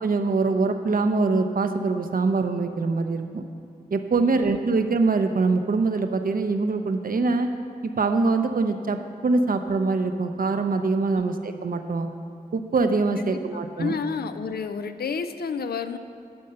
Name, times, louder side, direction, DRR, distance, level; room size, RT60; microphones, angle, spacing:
voice 1, 0.0-3.5 3.9-7.5 7.8-9.0 9.2-12.1 12.5-13.9, right 3 dB, 65° right, 7 dB, 0.7 m, -23 dB
voice 2, 13.8-16.0, left 5 dB, 90° left, 10 dB, 0.5 m, -30 dB
10.5 x 5.3 x 6.8 m, 2.4 s
cardioid pair, 55°, 16 cm